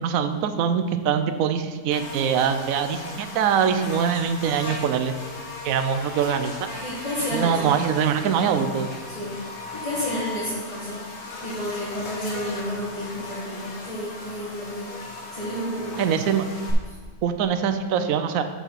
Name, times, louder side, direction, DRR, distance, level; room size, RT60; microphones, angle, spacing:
voice 1, 0.0-5.1 5.6-6.7 7.3-8.9 16.0-16.4 17.2-18.4, right 7 dB, 65° right, 9 dB, 1.0 m, -23 dB
Buzz, 1.9-16.7, left 2 dB, 45° left, 1.4 m, -37 dB
voice 2, 6.8-7.8 9.1-9.4 9.7-11.0 11.4-15.0 15.3-16.1 16.9-17.0, equal, 20° left, -8 dB, 1.7 m, -31 dB
6.9 x 5.8 x 5.7 m, 1.4 s
omnidirectional pair, 1.7 m